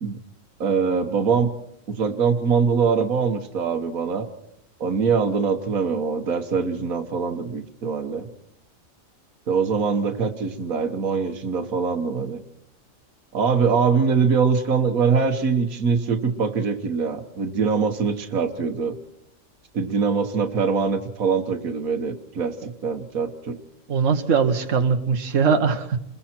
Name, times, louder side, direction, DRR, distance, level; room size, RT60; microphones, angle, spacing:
voice 1, 0.6-1.5 1.9-4.3 4.8-8.3 9.5-12.4 13.3-19.0 19.7-23.6, right 5 dB, 85° right, 7 dB, 1.7 m, -23 dB
voice 2, 23.9-26.0, right 6 dB, 65° right, 5 dB, 1.7 m, -21 dB
30.0 x 21.5 x 4.4 m, 0.78 s
omnidirectional pair, 1.4 m